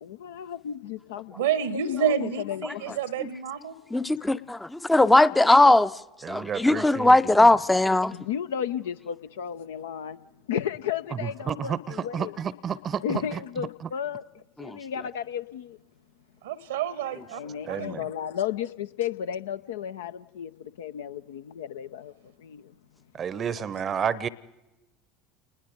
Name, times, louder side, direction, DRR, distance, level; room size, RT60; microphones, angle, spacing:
voice 1, 0.0-1.4 1.7-3.0 4.2-4.3 8.0-10.2 10.5-12.3 13.0-15.8 17.3-22.7, left 8 dB, 70° left, 0.6 m, -33 dB
voice 2, 1.4-3.8 16.4-17.4 17.7-17.9, right 10 dB, 70° right, 1.0 m, -29 dB
voice 3, 3.9-5.9 6.3-8.1 14.6-14.8, left 2 dB, 10° left, 0.6 m, -19 dB
voice 4, 6.2-7.5 11.2-13.4 17.6-18.0 23.1-24.3, right 7 dB, 35° right, 0.7 m, -31 dB
29.0 x 20.0 x 5.2 m
figure-of-eight pair, 70°, 0 cm